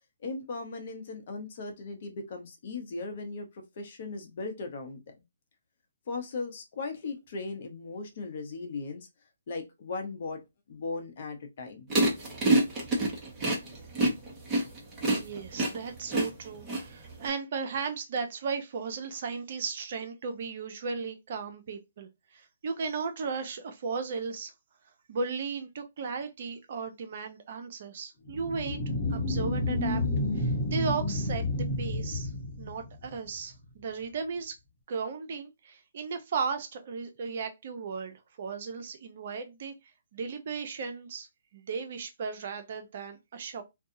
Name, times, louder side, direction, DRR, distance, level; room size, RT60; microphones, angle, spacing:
voice 1, 0.2-5.0 6.1-9.1 9.5-10.4 10.7-11.9, left 3 dB, 50° left, 0.8 m, -37 dB
sound 1, 11.9-17.3, right 2 dB, 15° right, 1.0 m, -26 dB
voice 2, 15.2-24.5 25.1-28.8 29.1-30.0 30.3-32.3 32.6-34.5 34.9-39.7 40.1-41.3 41.5-43.6, right 5 dB, 50° right, 0.6 m, -35 dB
sound 2, 28.3-33.3, left 1 dB, 30° left, 1.1 m, -30 dB
2.6 x 2.3 x 2.7 m
hypercardioid pair, 145°, 0 cm